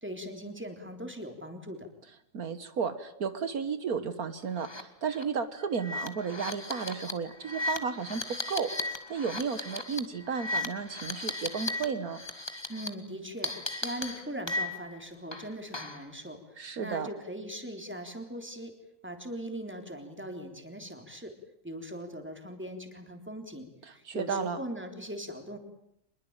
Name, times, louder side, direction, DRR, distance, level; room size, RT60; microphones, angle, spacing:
voice 1, 0.0-1.9 12.7-18.7 19.0-21.3 21.6-25.6, equal, 5° right, 5 dB, 3.6 m, -40 dB
voice 2, 2.3-12.2 16.6-17.1 24.1-24.6, right 6 dB, 70° right, 11 dB, 1.8 m, -33 dB
sound 1, 4.6-4.8 5.1-5.2 5.8-11.8 12.1-12.9 13.4-14.9 15.3-16.1, left 2 dB, 15° left, 2.0 m, -36 dB
25.5 x 22.0 x 8.9 m, 0.78 s
omnidirectional pair, 1.6 m